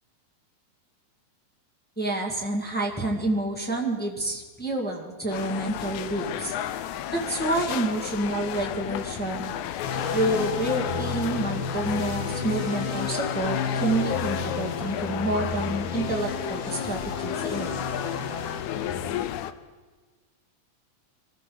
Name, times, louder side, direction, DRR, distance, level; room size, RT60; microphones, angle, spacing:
voice 1, 2.0-6.5 7.1-9.5 10.1-17.8, right 1 dB, 5° left, -1 dB, 0.8 m, -28 dB
sound 1, 5.3-19.5, left 11 dB, 80° left, 2.0 m, -33 dB
sound 2, 9.8-19.1, left 5 dB, 55° left, 1.4 m, -32 dB
24.0 x 14.0 x 3.9 m, 1.4 s
omnidirectional pair, 3.5 m